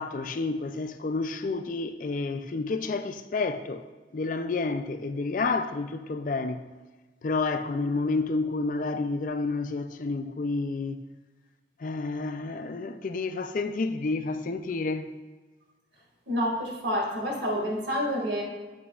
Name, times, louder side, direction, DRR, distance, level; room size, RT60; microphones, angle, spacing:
voice 1, 0.0-3.8 4.1-6.7 7.2-11.0 11.8-15.1, left 3 dB, 50° left, 0.4 m, -30 dB
voice 2, 16.3-18.4, equal, 90° right, 2.0 m, -28 dB
7.9 x 7.2 x 2.4 m
head